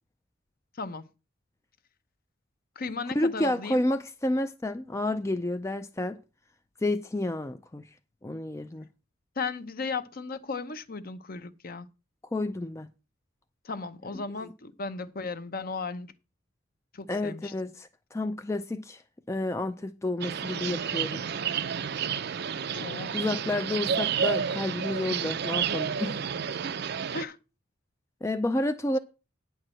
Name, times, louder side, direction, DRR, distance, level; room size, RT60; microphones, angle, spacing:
voice 1, 0.8-1.1 2.8-3.8 9.4-11.9 13.6-16.1 16.9-17.5 22.7-23.2 27.1-27.4, left 4 dB, 45° left, 0.8 m, -35 dB
voice 2, 3.1-6.2 6.8-7.9 8.2-8.9 12.3-12.9 14.1-14.2 17.1-19.0 19.3-21.2 23.1-26.2 28.2-29.0, left 1 dB, 15° left, 0.4 m, -30 dB
sound 1, 20.2-27.2, right 7 dB, 50° right, 0.5 m, -30 dB
9.7 x 4.7 x 7.6 m
head